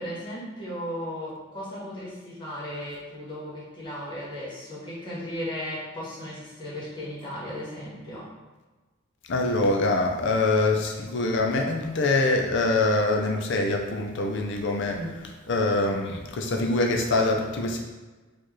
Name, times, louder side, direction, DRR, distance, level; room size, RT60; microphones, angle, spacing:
voice 1, 0.0-8.3 14.9-15.2, equal, 25° left, -8 dB, 1.4 m, -36 dB
voice 2, 9.3-15.0 15.5-17.8, left 2 dB, 65° left, 2 dB, 0.5 m, -24 dB
4.5 x 2.4 x 3.1 m, 1.3 s
head